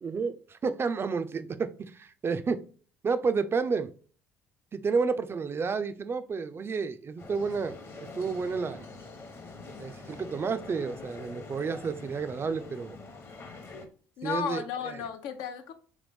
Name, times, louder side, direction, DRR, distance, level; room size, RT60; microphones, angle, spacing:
voice 1, 0.0-2.6 3.0-3.9 4.7-7.8 8.2-8.9 9.8-13.0 14.2-15.0, right 5 dB, 30° right, 11 dB, 0.4 m, -30 dB
sound 1, 7.2-13.9, left 3 dB, 35° left, 0.9 m, -45 dB
voice 2, 14.2-15.7, left 8 dB, 70° left, 7 dB, 0.6 m, -34 dB
3.6 x 3.2 x 3.4 m, 0.41 s
hypercardioid pair, 65°, 8 cm